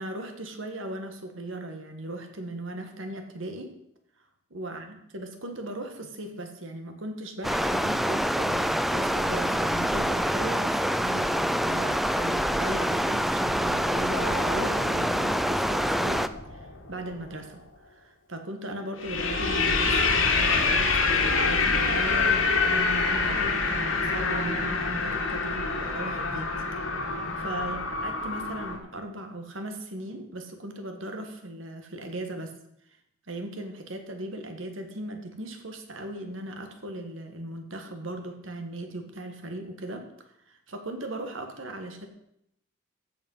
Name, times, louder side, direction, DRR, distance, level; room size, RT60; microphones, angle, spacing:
voice 1, 0.0-3.7 4.5-26.6 27.4-32.6 33.3-40.1 40.5-42.1, right 1 dB, 65° right, 5 dB, 1.6 m, -38 dB
Stream, 7.4-16.3, equal, ahead, 0.3 m, -26 dB
sound 1, 14.1-17.0 19.0-28.8, left 4 dB, 75° left, 1.9 m, -26 dB
15.0 x 5.6 x 5.6 m, 0.77 s
head